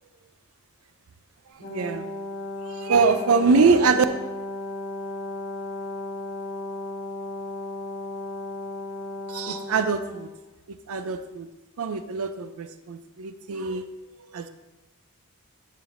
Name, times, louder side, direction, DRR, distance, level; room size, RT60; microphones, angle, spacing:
voice 1, 1.5-2.1 2.7-4.0 9.3-10.3 10.9-11.5 11.8-13.8 14.3-14.5, right 4 dB, 65° right, 10 dB, 0.5 m, -23 dB
Brass instrument, 1.6-10.3, left 2 dB, 45° left, 1.7 m, -35 dB
9.8 x 6.7 x 2.6 m, 1.1 s
head